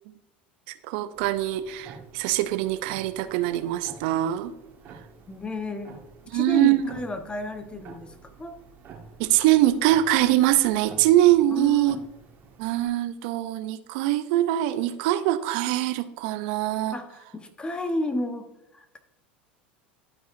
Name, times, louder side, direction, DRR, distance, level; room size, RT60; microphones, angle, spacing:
voice 1, 0.9-4.5 6.3-6.8 9.2-12.0 12.6-17.0, right 14 dB, 65° right, 11 dB, 0.5 m, -23 dB
sound 1, 1.1-12.9, right 5 dB, 40° right, 1.6 m, -49 dB
voice 2, 5.3-6.0 6.3-8.5 11.5-12.1 16.9-19.0, left 2 dB, 15° left, 8 dB, 0.9 m, -32 dB
12.0 x 4.9 x 2.6 m, 0.91 s
hypercardioid pair, 90°, 6 cm